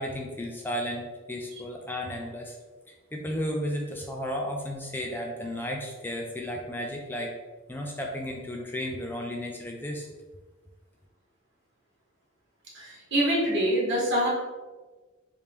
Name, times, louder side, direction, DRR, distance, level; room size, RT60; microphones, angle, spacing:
voice 1, 0.0-2.6 2.9-7.3 7.7-10.1, equal, 10° left, 0 dB, 0.4 m, -33 dB
voice 2, 12.7-14.3, right 1 dB, 60° right, -5 dB, 1.4 m, -25 dB
3.3 x 2.8 x 3.4 m, 1.3 s
head